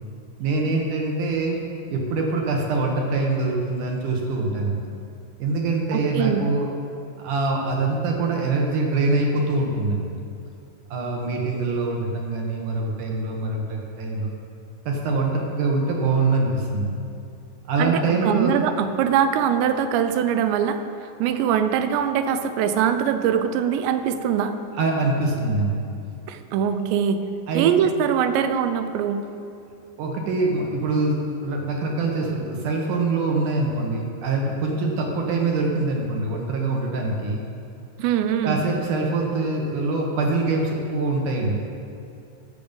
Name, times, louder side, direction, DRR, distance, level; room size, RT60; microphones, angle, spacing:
voice 1, 0.4-1.6 1.9-4.9 5.4-6.7 7.2-10.1 10.9-14.3 14.9-17.0 17.7-18.5 24.7-25.8 27.5-27.7 30.0-37.5 38.4-41.6, right 3 dB, 70° right, 0 dB, 2.1 m, -24 dB
voice 2, 5.9-6.5 17.8-20.8 21.2-24.5 26.3-27.2 27.5-29.3 38.0-38.6, right 8 dB, 85° right, 9 dB, 2.9 m, -22 dB
15.0 x 6.9 x 5.2 m, 2.6 s
omnidirectional pair, 5.0 m